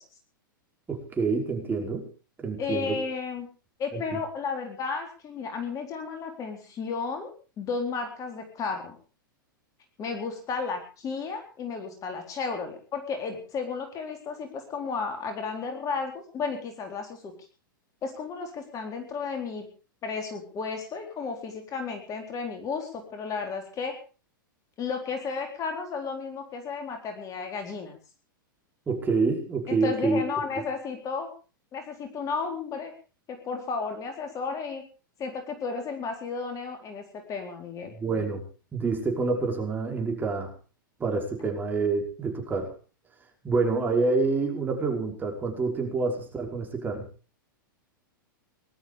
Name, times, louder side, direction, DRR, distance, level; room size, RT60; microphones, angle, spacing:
voice 1, 0.9-2.1 2.4-3.0 3.9-4.0 28.9-30.3 38.0-38.4 38.7-40.5 41.0-42.7 43.4-47.0, right 4 dB, 15° right, 2 dB, 5.2 m, -27 dB
voice 2, 2.6-3.5 3.8-7.3 7.6-9.0 10.0-17.3 18.0-19.7 20.0-24.0 24.8-28.0 29.7-31.3 31.7-32.9 33.3-34.8 35.2-37.9, left 5 dB, 30° left, 4 dB, 4.1 m, -33 dB
19.5 x 12.5 x 5.2 m, 0.37 s
hypercardioid pair, 100°, 11 cm